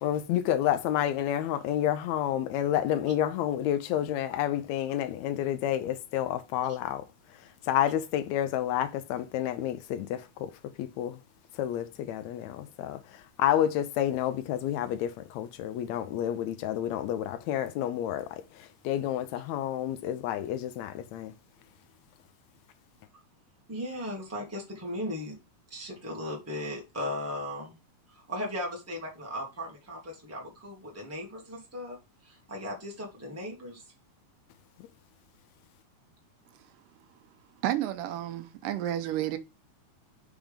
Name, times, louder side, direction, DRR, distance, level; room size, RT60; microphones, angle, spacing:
voice 1, 0.0-7.0 7.7-10.5 10.8-11.2 11.6-13.0 13.4-18.4 18.8-21.3, left 11 dB, 85° left, 1.6 m, -29 dB
voice 2, 23.7-25.4 25.7-27.8 28.1-32.0 32.2-33.8, left 1 dB, 25° right, 0.3 m, -37 dB
voice 3, 37.6-39.4, right 12 dB, 90° right, 2.3 m, -31 dB
5.9 x 3.6 x 5.1 m
omnidirectional pair, 3.8 m